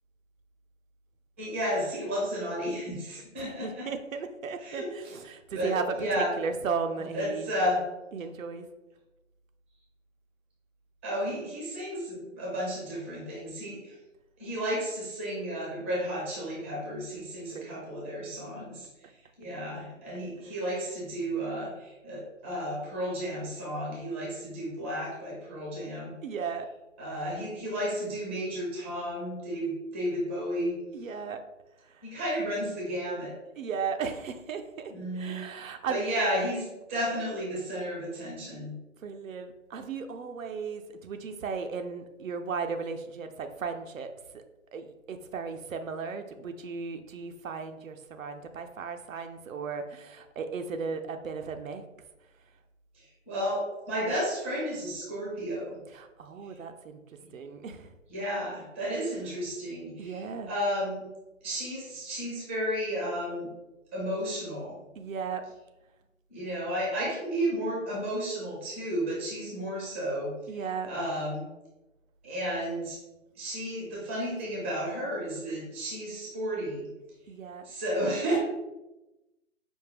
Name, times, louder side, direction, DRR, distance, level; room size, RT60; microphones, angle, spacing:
voice 1, 1.4-3.9 4.6-5.1 5.5-6.4 7.1-7.8 11.0-13.9 14.4-18.9 19.4-26.1 27.0-30.7 32.0-33.3 34.9-35.4 35.9-38.7 52.9-55.8 56.4-56.5 57.2-57.3 58.1-61.0 61.4-63.5 63.9-64.8 66.3-71.4 72.2-73.0 73.4-76.9 77.6-78.4, equal, 10° right, -5 dB, 0.5 m, -32 dB
voice 2, 3.4-7.5 8.1-8.7 17.5-17.9 26.2-26.7 30.9-31.4 31.9-32.1 33.6-36.0 39.0-44.4 44.7-51.8 55.9-57.9 60.0-60.5 65.0-65.5 70.5-71.0 77.3-77.7, right 5 dB, 80° right, 7 dB, 0.5 m, -36 dB
5.1 x 2.1 x 3.2 m, 1.0 s
figure-of-eight pair, 145°, 40 cm